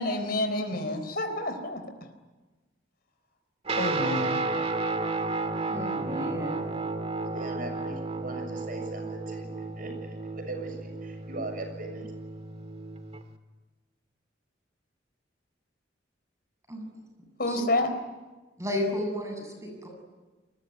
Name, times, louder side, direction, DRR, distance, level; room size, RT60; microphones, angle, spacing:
voice 1, 0.0-1.8 3.8-4.4 17.4-17.9, left 1 dB, 55° left, 7 dB, 4.1 m, -29 dB
Guitar, 3.7-13.3, right 3 dB, 35° right, 1.9 m, -32 dB
voice 2, 5.7-6.6 16.7-16.8 17.4-17.6 18.6-19.9, left 1 dB, 15° right, 3 dB, 8.0 m, -32 dB
voice 3, 7.1-9.5 9.8-12.1, right 2 dB, 50° right, 5 dB, 6.9 m, -39 dB
29.5 x 21.5 x 9.6 m, 1.2 s
head